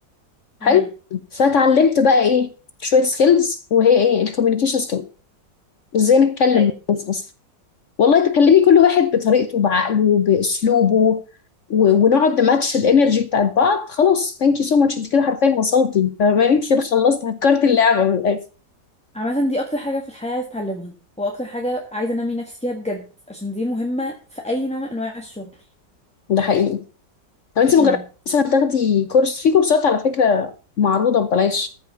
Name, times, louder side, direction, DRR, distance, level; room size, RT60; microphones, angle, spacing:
voice 1, 1.1-2.5 2.8-5.0 5.9-7.3 8.0-11.2 11.7-18.4 26.3-26.8 27.6-28.0 28.3-31.7, left 6 dB, 55° left, 0.9 m, -17 dB
voice 2, 19.1-25.5 27.8-28.0, left 1 dB, 5° left, 1.3 m, -26 dB
14.0 x 5.4 x 6.8 m
omnidirectional pair, 2.0 m